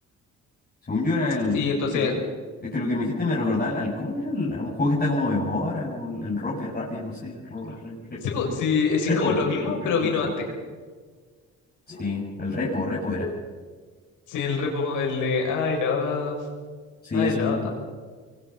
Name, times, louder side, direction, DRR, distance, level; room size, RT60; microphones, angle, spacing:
voice 1, 0.9-1.7 1.9-2.1 2.6-8.2 9.1-9.7 11.9-13.4 17.0-17.7, left 2 dB, 30° left, -6 dB, 7.0 m, -27 dB
voice 2, 1.5-2.1 7.7-7.8 8.2-10.5 14.3-16.4 17.1-17.7, left 5 dB, 90° left, 1 dB, 7.0 m, -25 dB
26.0 x 23.0 x 5.8 m, 1.5 s
cardioid pair, 90°, 30 cm